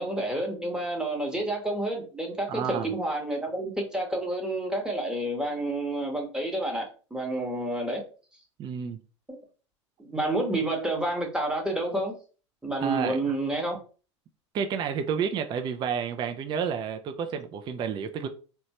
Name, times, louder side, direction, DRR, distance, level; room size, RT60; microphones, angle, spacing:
voice 1, 0.0-6.9 7.1-8.0 10.0-12.2 12.6-13.8, right 1 dB, 5° right, 0.9 m, -29 dB
voice 2, 2.5-2.9 8.6-9.0 12.8-13.4 14.5-18.3, right 7 dB, 30° right, 0.3 m, -30 dB
2.9 x 2.2 x 2.8 m
hypercardioid pair, 90°, 16 cm